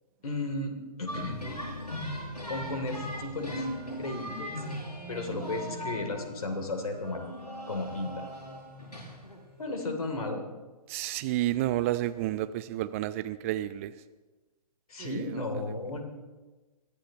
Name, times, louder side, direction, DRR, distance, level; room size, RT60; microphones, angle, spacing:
voice 1, 0.2-1.4 2.5-4.6 5.1-7.2 7.7-8.2 9.6-10.4 14.9-16.0, left 2 dB, 65° left, 4 dB, 3.1 m, -34 dB
sound 1, 1.1-9.7, equal, 90° left, 5.9 m, -39 dB
voice 2, 10.9-13.9 15.0-15.3, right 14 dB, 20° right, 14 dB, 0.5 m, -30 dB
23.0 x 15.0 x 3.0 m, 1.2 s
figure-of-eight pair, 135°, 20 cm